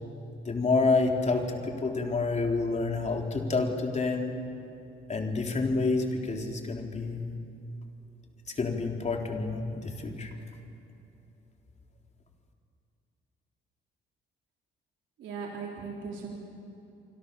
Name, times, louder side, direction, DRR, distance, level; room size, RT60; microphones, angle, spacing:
voice 1, 0.5-4.3 5.1-7.3 8.6-10.3, left 3 dB, 35° left, 2 dB, 3.6 m, -28 dB
voice 2, 15.2-16.3, right 5 dB, 75° right, -1 dB, 3.8 m, -38 dB
27.5 x 24.5 x 7.0 m, 2.9 s
cardioid pair, 90°, 20 cm